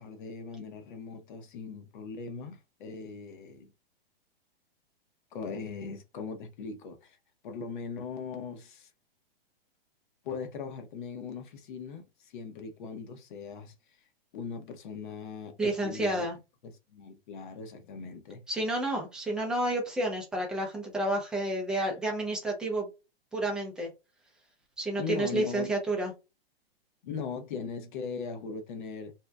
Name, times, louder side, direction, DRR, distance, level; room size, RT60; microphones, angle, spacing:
voice 1, 0.0-3.7 5.3-7.2 7.4-8.9 10.2-14.0 14.3-16.3 16.6-18.4 25.0-25.8 27.0-29.1, left 5 dB, 50° left, 0.9 m, -39 dB
voice 2, 15.6-16.4 18.5-22.9 23.3-23.9 24.8-26.1, right 1 dB, 5° right, 0.4 m, -30 dB
2.8 x 2.2 x 3.3 m
hypercardioid pair, 155°, 31 cm